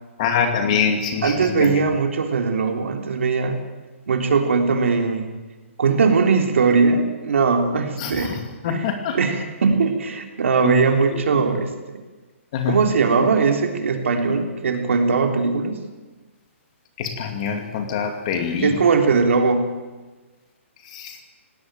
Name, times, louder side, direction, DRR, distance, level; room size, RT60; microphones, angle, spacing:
voice 1, 0.2-1.8 8.0-9.2 10.6-10.8 11.3-11.6 12.5-12.9 17.0-18.8 20.8-21.2, left 6 dB, 30° left, 6 dB, 2.5 m, -25 dB
voice 2, 1.2-3.6 4.1-5.3 5.8-8.4 8.7-11.7 12.7-15.8 18.6-19.7, right 4 dB, 65° right, 4 dB, 3.6 m, -20 dB
19.0 x 18.0 x 9.2 m, 1.3 s
hypercardioid pair, 175°, 7 cm